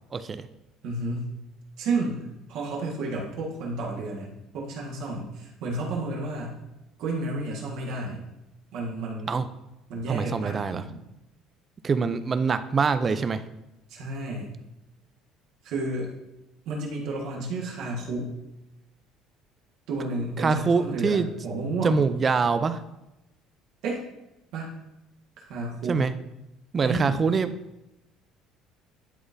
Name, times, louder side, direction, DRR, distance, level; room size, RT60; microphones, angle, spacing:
voice 1, 0.1-0.5 8.1-8.2 9.3-9.5 10.1-10.8 11.8-13.4 20.4-21.3 21.8-22.8 25.9-26.1 26.7-27.5, right 5 dB, 20° right, 12 dB, 0.3 m, -24 dB
voice 2, 0.8-1.3 1.8-4.3 4.5-6.6 7.0-8.2 8.7-9.3 9.9-11.0 13.9-14.5 15.6-16.1 16.6-18.3 19.9-22.0 23.8-24.0 24.5-24.7 25.4-26.1 26.8-27.3, right 2 dB, 60° right, -3 dB, 1.6 m, -31 dB
11.0 x 4.0 x 2.6 m, 0.93 s
cardioid pair, 175°, 0 cm